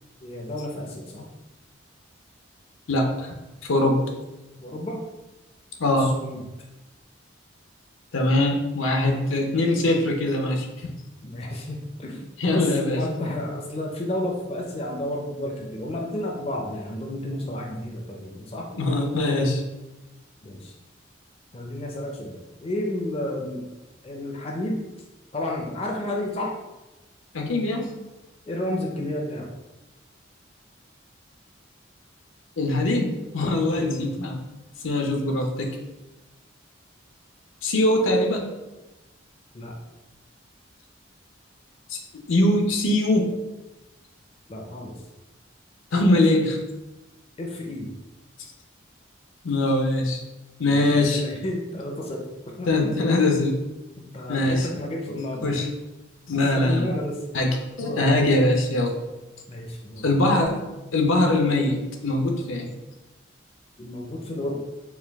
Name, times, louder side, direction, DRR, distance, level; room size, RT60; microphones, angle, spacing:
voice 1, 0.2-1.2 4.6-5.0 6.0-6.4 11.2-18.7 20.4-20.7 21.5-23.7 24.0-24.9 25.3-26.6 28.5-29.5 33.7-34.1 39.5-39.8 44.5-45.0 47.4-47.9 50.7-53.2 54.1-55.6 56.3-57.2 57.8-58.1 59.5-60.1 63.8-64.6, left 1 dB, 30° left, 0 dB, 0.4 m, -31 dB
voice 2, 2.9-3.3 3.7-4.0 5.8-6.1 8.1-10.9 12.4-13.0 18.7-19.6 27.3-27.9 32.6-34.4 34.8-35.8 37.6-38.6 41.9-42.0 42.3-43.4 45.9-46.6 49.4-50.2 50.6-51.2 52.7-53.6 54.3-54.7 55.4-55.7 56.3-56.9 57.3-59.0 60.0-60.7 60.9-62.7, left 1 dB, 85° left, 3 dB, 0.6 m, -22 dB
4.5 x 2.3 x 3.4 m, 1.0 s
head